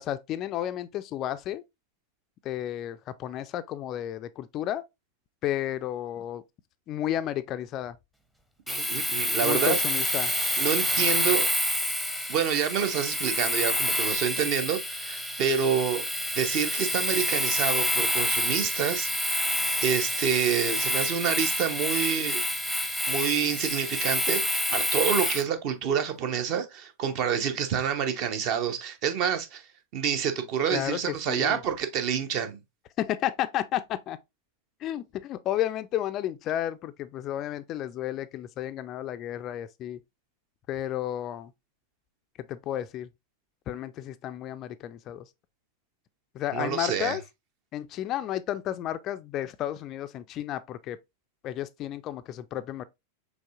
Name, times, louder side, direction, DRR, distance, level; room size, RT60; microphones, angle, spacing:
voice 1, 0.0-1.6 2.4-4.8 5.4-6.4 6.9-8.0 9.4-10.3 30.7-31.0 31.3-31.6 33.0-34.2 34.8-40.0 40.7-41.5 42.5-43.1 43.7-45.3 46.3-47.2 47.7-51.0 51.4-52.8, left 12 dB, 35° left, 0.3 m, -32 dB
Domestic sounds home sounds, 8.7-25.5, equal, 5° right, 0.7 m, -28 dB
voice 2, 8.7-9.8 10.6-11.5 12.3-16.1 16.3-19.1 19.8-22.4 23.1-29.6 29.9-32.6 46.5-47.2, right 8 dB, 40° right, 0.7 m, -28 dB
5.1 x 3.4 x 2.3 m
figure-of-eight pair, 90°, 0 cm